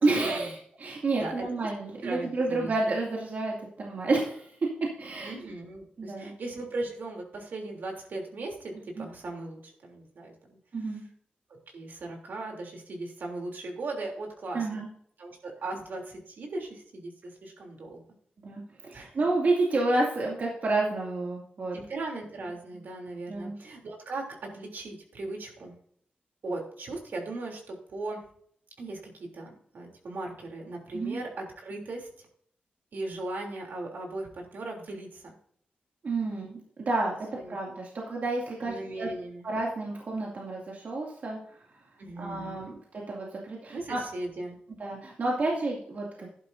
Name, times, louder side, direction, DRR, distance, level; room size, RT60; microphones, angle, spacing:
voice 1, 0.0-4.5 5.0-5.5 6.0-6.3 9.0-9.1 10.7-11.0 14.5-14.9 18.4-21.8 23.3-23.6 30.9-31.2 36.0-37.1 37.5-39.1 39.4-41.4 42.2-44.0 44.8-46.3, right 2 dB, 55° right, -3 dB, 2.4 m, -30 dB
voice 2, 2.0-2.7 5.2-11.0 11.7-14.8 15.2-18.0 18.9-19.2 21.7-25.7 26.4-28.2 28.8-32.3 32.9-35.3 37.3-37.8 38.6-39.5 42.0-42.8 43.7-44.6, right 2 dB, 70° right, 1 dB, 3.2 m, -38 dB
12.5 x 11.0 x 2.7 m, 0.63 s
wide cardioid pair, 130°, 3 cm